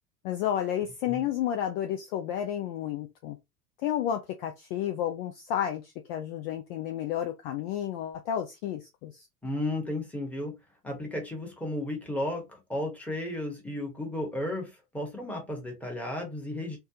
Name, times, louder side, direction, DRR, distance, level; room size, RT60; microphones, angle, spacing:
voice 1, 0.2-3.4 3.8-9.3, left 10 dB, 40° left, 0.5 m, -31 dB
voice 2, 9.4-10.5 10.8-16.8, left 1 dB, 5° left, 1.1 m, -34 dB
3.3 x 2.2 x 2.7 m
figure-of-eight pair, 85°, 47 cm